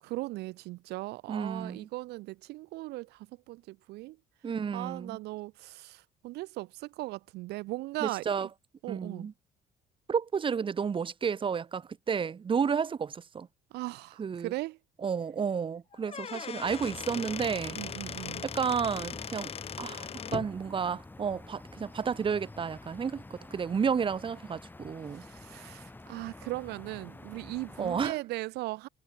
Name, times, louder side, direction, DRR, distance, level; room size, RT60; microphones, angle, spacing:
voice 1, 0.0-4.2 4.7-8.5 8.8-9.3 13.7-14.8 17.8-18.4 25.1-28.9, right 20 dB, 80° right, 0.5 m, -38 dB
voice 2, 1.3-1.9 4.4-5.2 8.0-8.5 8.9-9.3 10.1-13.5 14.2-14.5 15.0-17.8 18.4-19.5 19.8-25.2 27.8-28.1, right 6 dB, 30° right, 1.0 m, -31 dB
Squeak / Wood, 15.9-20.5, left 7 dB, 35° left, 1.0 m, -39 dB
sound 1, 16.6-28.1, left 2 dB, 10° left, 1.6 m, -48 dB
cardioid pair, 110°, 17 cm